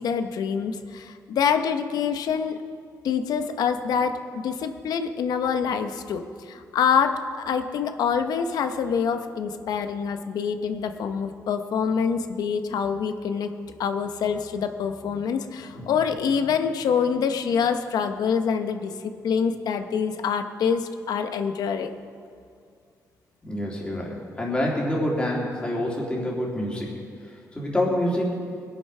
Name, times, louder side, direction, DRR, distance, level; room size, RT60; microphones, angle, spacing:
voice 1, 0.0-2.6 3.0-13.5 13.8-21.9, left 6 dB, 80° left, 7 dB, 0.9 m, -26 dB
voice 2, 23.4-27.0 27.5-28.4, left 1 dB, 15° left, -3 dB, 3.2 m, -27 dB
21.0 x 8.3 x 5.6 m, 2.3 s
cardioid pair, 125°, 7 cm